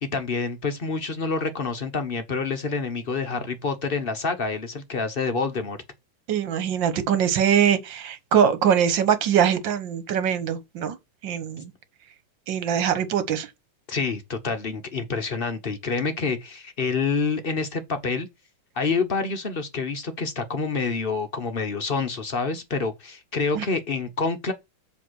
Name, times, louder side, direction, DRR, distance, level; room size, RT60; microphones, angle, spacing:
voice 1, 0.0-5.8 13.9-18.3 18.8-24.5, left 4 dB, 45° left, 0.7 m, -27 dB
voice 2, 6.3-11.0 11.2-11.7 12.5-13.5 23.6-23.7, right 8 dB, 70° right, 1.8 m, -22 dB
7.6 x 3.5 x 6.1 m
omnidirectional pair, 2.1 m